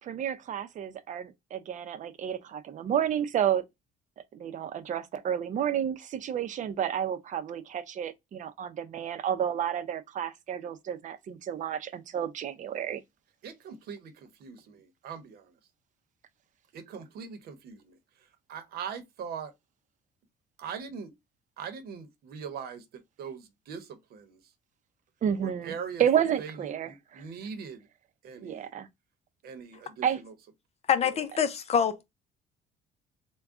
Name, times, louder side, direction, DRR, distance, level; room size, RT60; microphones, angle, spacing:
voice 1, 0.0-3.6 4.3-13.0 25.2-27.2 28.4-28.9 30.0-30.2, right 9 dB, 50° right, 0.6 m, -31 dB
voice 2, 13.4-15.5 16.7-18.0 18.5-19.5 20.6-21.1 21.6-22.8 23.2-24.4 25.4-26.0 26.4-27.8 28.2-28.7 29.4-30.3 31.0-31.2, right 6 dB, 65° right, 0.9 m, -41 dB
voice 3, 30.9-32.0, left 7 dB, 40° left, 0.7 m, -25 dB
3.5 x 2.2 x 3.6 m
cardioid pair, 110°, 17 cm